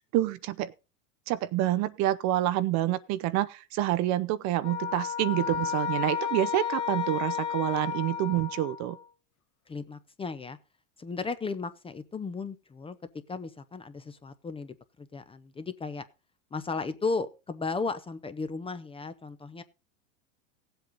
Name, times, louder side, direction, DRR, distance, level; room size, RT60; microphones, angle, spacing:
voice 1, 0.1-0.7 1.3-9.0, right 14 dB, 45° right, 0.7 m, -27 dB
sound 1, 4.6-9.1, left 8 dB, 40° left, 1.6 m, -32 dB
voice 2, 9.7-10.6 11.0-13.0 13.3-16.1 16.5-19.6, left 4 dB, 15° left, 0.7 m, -35 dB
16.5 x 7.9 x 3.9 m
supercardioid pair, 115°, 41 cm